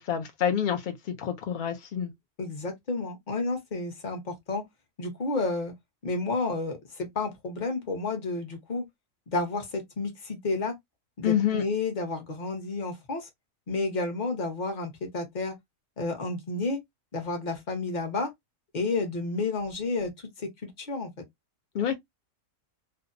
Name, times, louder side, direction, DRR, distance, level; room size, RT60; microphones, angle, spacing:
voice 1, 0.0-2.1 11.2-11.6 21.7-21.9, left 9 dB, 70° left, 0.4 m, -27 dB
voice 2, 2.4-4.6 5.0-5.7 6.0-8.8 9.3-10.7 11.2-13.3 13.7-15.5 16.0-16.8 17.1-18.3 18.7-20.1 20.4-21.2, left 3 dB, 40° left, 0.8 m, -31 dB
2.6 x 2.0 x 2.4 m
omnidirectional pair, 1.4 m